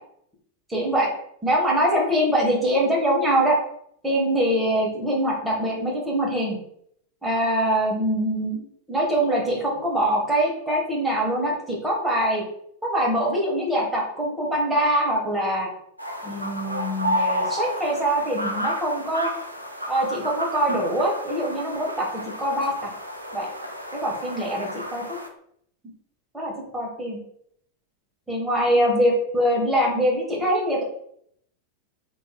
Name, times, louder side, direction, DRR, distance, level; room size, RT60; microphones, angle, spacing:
voice 1, 0.7-1.1 1.4-3.6 4.0-6.6 7.2-12.4 12.8-15.7 16.2-19.3 19.9-22.9 23.3-23.5 23.9-25.2 26.3-27.2 28.3-30.8, right 1 dB, 5° right, -3 dB, 0.9 m, -23 dB
sound 1, 16.0-25.3, equal, 85° right, 0.3 m, -31 dB
2.8 x 2.4 x 2.2 m, 0.69 s
figure-of-eight pair, 90°, 0 cm